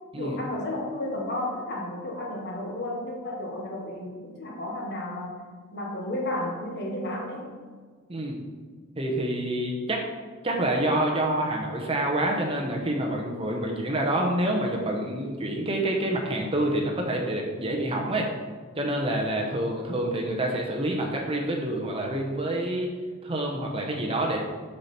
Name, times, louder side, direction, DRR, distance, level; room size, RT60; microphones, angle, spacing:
voice 1, 0.2-5.4 5.7-7.5, left 1 dB, 50° left, 0 dB, 1.3 m, -32 dB
voice 2, 9.0-10.0 10.4-18.3 18.7-22.9 23.2-24.4, right 1 dB, 25° right, 0 dB, 0.8 m, -27 dB
6.5 x 5.8 x 4.2 m, 1.5 s
head